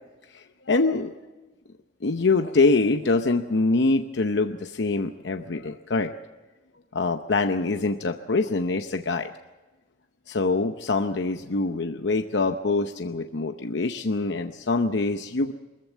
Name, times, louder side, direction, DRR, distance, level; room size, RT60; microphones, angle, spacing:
voice 1, 0.3-1.1 2.0-6.1 6.9-9.3 10.3-15.5, left 3 dB, 75° left, 7 dB, 0.8 m, -24 dB
23.0 x 14.5 x 8.2 m, 1.2 s
head